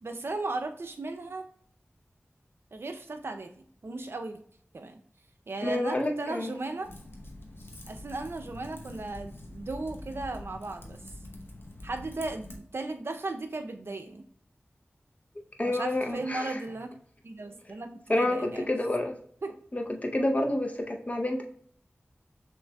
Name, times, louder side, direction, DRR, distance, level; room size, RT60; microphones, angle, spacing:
voice 1, 0.0-1.5 2.7-4.4 4.7-5.0 5.5-6.9 7.9-11.0 11.8-14.2 15.6-16.9 17.2-17.9 18.2-18.7 19.4-19.5, right 2 dB, 65° right, 5 dB, 0.6 m, -36 dB
voice 2, 5.6-6.5 15.6-16.6 18.1-19.2 19.7-21.4, left 1 dB, 35° left, 2 dB, 0.7 m, -29 dB
Typing, 6.8-12.6, left 1 dB, 60° left, 0.9 m, -45 dB
6.1 x 3.2 x 2.3 m, 0.63 s
wide cardioid pair, 45°, 4 cm